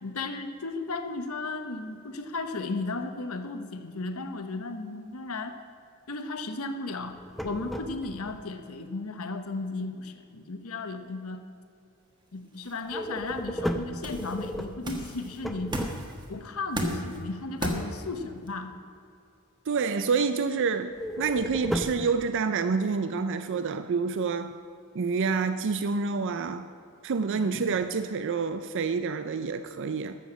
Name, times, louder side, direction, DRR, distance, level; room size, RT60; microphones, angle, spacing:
voice 1, 0.0-5.6 6.1-11.4 12.3-15.7 16.3-18.8 27.3-27.8, left 3 dB, 75° left, 8 dB, 1.0 m, -35 dB
sound 1, 7.1-8.4 12.9-16.4 20.9-22.1, equal, ahead, 0.6 m, -34 dB
sound 2, 12.3-18.5, right 1 dB, 20° right, 1.4 m, -36 dB
voice 2, 19.7-24.5 24.9-26.7 27.0-30.2, right 5 dB, 60° right, 10 dB, 0.5 m, -28 dB
13.0 x 7.1 x 7.4 m, 2.4 s
head